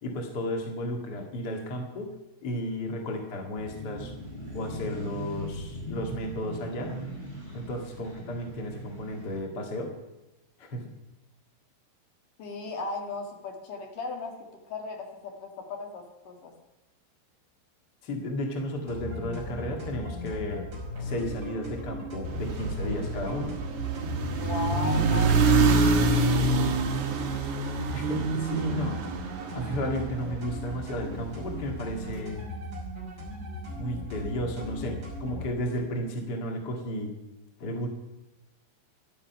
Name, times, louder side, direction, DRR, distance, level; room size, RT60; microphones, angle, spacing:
voice 1, 0.0-2.1 2.4-4.1 4.5-6.9 7.5-9.9 10.6-10.9 18.0-20.6 21.0-23.6 27.9-29.0 29.5-32.4 33.7-37.1 37.6-37.9, equal, 90° left, 2 dB, 0.9 m, -33 dB
sound 1, 3.5-9.4, equal, 10° left, 3.4 m, -39 dB
voice 2, 12.4-14.3 14.7-16.5 24.4-26.4, left 3 dB, 55° left, 3 dB, 2.6 m, -36 dB
sound 2, 18.9-35.5, left 1 dB, 20° right, 5.7 m, -37 dB
sound 3, 22.2-30.6, right 3 dB, 75° right, 1.7 m, -26 dB
15.5 x 11.5 x 5.8 m, 0.99 s
omnidirectional pair, 5.7 m